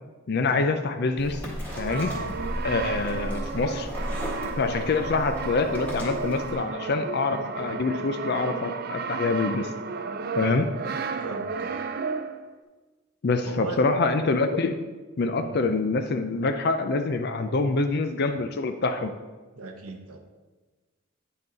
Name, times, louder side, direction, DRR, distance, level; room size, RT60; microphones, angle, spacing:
voice 1, 0.3-1.4 1.8-2.1 2.6-3.9 4.6-9.7 10.4-10.7 13.2-14.8 15.2-19.1, left 3 dB, 50° left, 7 dB, 0.4 m, -25 dB
sound 1, 1.2-6.5, equal, 5° left, 1.6 m, -35 dB
Brass instrument, 1.7-12.5, right 4 dB, 45° right, 0.4 m, -33 dB
voice 2, 11.2-11.9 13.4-13.8 15.4-15.6 19.5-20.2, right 3 dB, 90° right, 4 dB, 0.8 m, -38 dB
9.2 x 5.7 x 4.0 m, 1.3 s
head